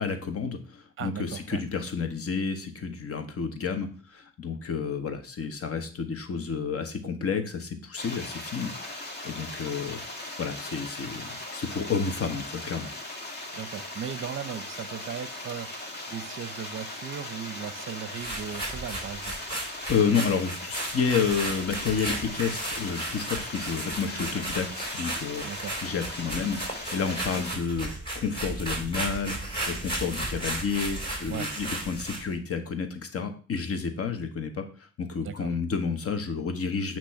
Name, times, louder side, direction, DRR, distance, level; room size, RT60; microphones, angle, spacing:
voice 1, 0.0-10.0 10.4-12.9 19.9-25.4 25.8-26.6 26.9-37.0, left 5 dB, 50° left, 7 dB, 1.3 m, -30 dB
voice 2, 1.0-1.6 13.5-19.4 25.4-25.8 31.3-31.5 35.2-35.5, right 8 dB, 40° right, 14 dB, 0.7 m, -37 dB
sound 1, 8.0-27.6, left 1 dB, 35° left, 1.5 m, -39 dB
sound 2, 18.1-32.3, right 1 dB, 15° left, 3.7 m, -34 dB
8.5 x 3.1 x 5.7 m, 0.39 s
cardioid pair, 90°, 30 cm